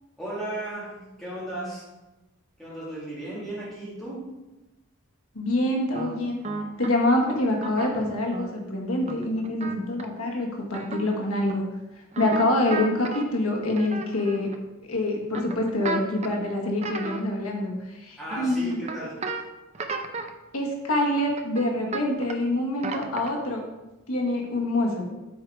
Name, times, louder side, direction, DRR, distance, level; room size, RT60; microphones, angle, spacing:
voice 1, 0.2-1.9 2.6-4.3 18.2-19.4, right 1 dB, ahead, -9 dB, 2.4 m, -35 dB
voice 2, 5.3-6.4 6.8-11.6 12.2-14.5 14.9-18.8 20.5-23.6 24.1-25.1, left 1 dB, 75° left, 0 dB, 1.4 m, -26 dB
sound 1, 5.9-6.9 7.5-8.5 9.0-10.0 10.7-11.2 11.4-11.5 12.1-13.2 13.7-14.5 15.3-16.3 16.8-17.5 18.3-19.4 19.7-20.3 21.3-22.4 22.8-23.5, right 3 dB, 30° right, 0.5 m, -34 dB
8.1 x 4.6 x 4.7 m, 1.0 s
head